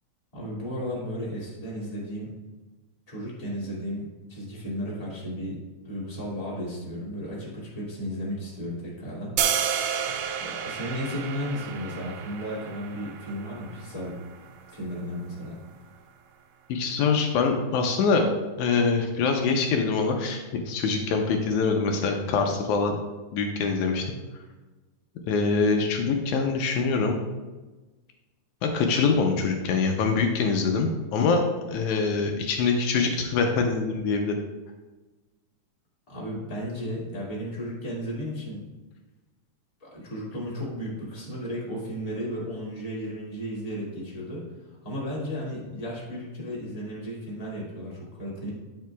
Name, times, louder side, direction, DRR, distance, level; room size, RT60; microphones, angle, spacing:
voice 1, 0.3-2.3 3.1-5.6 5.8-9.3 10.4-14.2 14.7-15.6 36.1-38.6 39.8-44.4 44.8-48.5, equal, 15° left, -6 dB, 1.8 m, -34 dB
sound 1, 9.4-15.5, right 8 dB, 80° right, 2.0 m, -32 dB
voice 2, 16.7-18.3 18.6-23.0 23.3-24.1 25.3-27.2 28.6-31.4 31.7-34.4, left 4 dB, 80° left, 3 dB, 2.0 m, -24 dB
10.5 x 6.7 x 2.3 m, 1.2 s
omnidirectional pair, 3.6 m